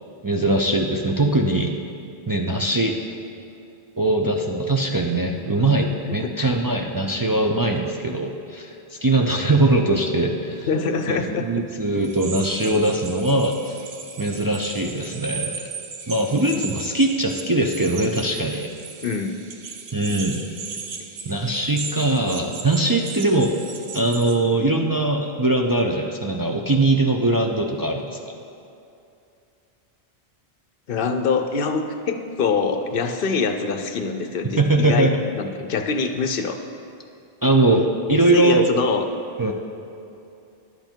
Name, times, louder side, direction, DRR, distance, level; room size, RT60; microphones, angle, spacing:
voice 1, 0.2-1.8 2.3-2.9 4.0-10.7 11.1-13.8 14.2-15.6 16.1-18.7 19.9-20.5 21.3-23.5 23.9-28.2 34.6-35.3 37.4-38.6 39.4-39.5, right 2 dB, 30° right, 1 dB, 0.4 m, -21 dB
voice 2, 6.2-6.5 10.7-11.5 19.0-19.4 30.9-36.6 38.1-39.0, left 5 dB, 60° left, 7 dB, 0.8 m, -24 dB
sound 1, 12.0-24.4, right 5 dB, 75° right, 1.0 m, -37 dB
11.0 x 7.8 x 4.5 m, 2.6 s
omnidirectional pair, 1.1 m